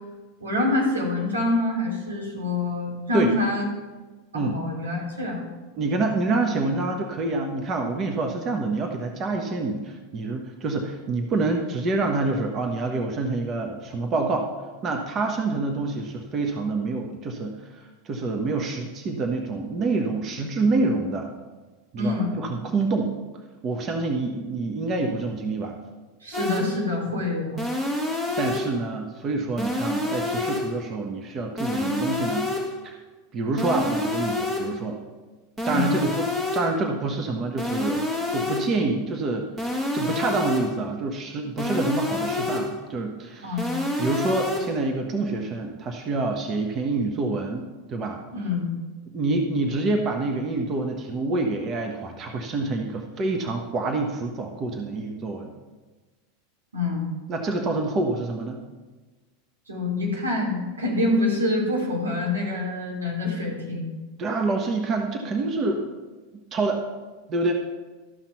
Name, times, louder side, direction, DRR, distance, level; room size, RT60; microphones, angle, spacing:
voice 1, 0.4-3.7 4.3-5.4 22.0-22.3 26.2-27.6 35.7-35.9 43.4-43.7 48.3-48.7 56.7-57.0 59.7-63.9, left 2 dB, 90° right, -2 dB, 3.2 m, -26 dB
voice 2, 5.8-14.5 14.8-21.3 21.9-23.1 23.6-25.8 28.3-32.5 32.8-33.0 33.3-35.0 35.6-38.1 38.3-39.5 39.9-43.6 44.0-48.2 49.1-55.5 57.3-58.6 64.2-65.8 66.5-66.8 67.3-67.5, right 3 dB, 35° right, 3 dB, 1.2 m, -27 dB
sound 1, 26.3-26.8 27.6-28.8 29.6-30.8 31.6-32.8 33.6-34.8 35.6-36.8 37.6-38.8 39.6-40.8 41.6-42.8 43.6-44.8, left 2 dB, 15° right, 1.8 m, -28 dB
13.5 x 5.9 x 5.6 m, 1.3 s
hypercardioid pair, 95°, 0 cm